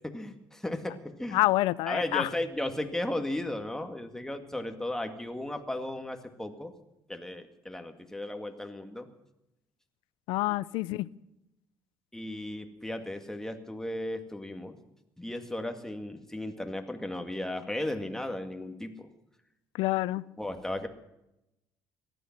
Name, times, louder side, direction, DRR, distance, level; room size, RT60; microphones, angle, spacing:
voice 1, 0.0-1.4 1.9-6.7 7.1-9.1 12.1-14.8 15.2-19.1 20.4-20.9, left 1 dB, 5° left, 5 dB, 2.1 m, -35 dB
voice 2, 1.3-2.3 10.3-11.1 19.8-20.2, left 18 dB, 85° left, 20 dB, 0.5 m, -27 dB
18.5 x 13.0 x 6.0 m, 0.89 s
supercardioid pair, 85°, 8 cm